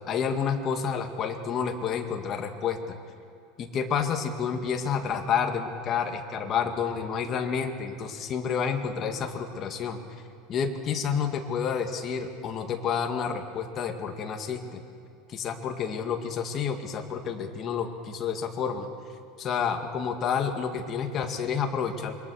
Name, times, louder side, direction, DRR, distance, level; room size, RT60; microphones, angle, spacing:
voice 1, 0.1-3.0 3.6-10.0 10.5-14.8 15.3-18.9 19.4-22.1, left 6 dB, 30° left, 4 dB, 2.1 m, -29 dB
27.0 x 23.0 x 6.5 m, 2.5 s
supercardioid pair, 160°, 0 cm